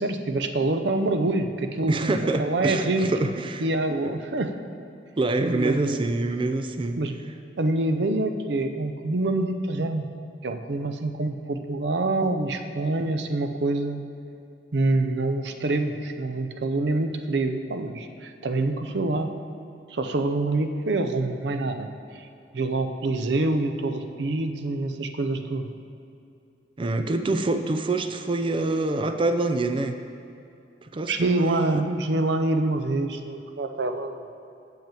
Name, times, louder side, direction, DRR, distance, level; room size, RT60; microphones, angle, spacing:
voice 1, 0.0-2.1 2.4-3.1 3.6-4.5 5.5-6.1 7.0-7.1 7.6-10.1 10.4-14.0 14.7-19.3 19.9-21.9 22.1-22.3 22.5-25.7 31.1-34.2, right 2 dB, 70° right, 6 dB, 0.6 m, -26 dB
voice 2, 1.9-3.6 5.2-7.0 26.8-30.0 30.8-31.8, right 2 dB, 30° right, 7 dB, 0.4 m, -26 dB
7.3 x 5.6 x 7.5 m, 2.6 s
head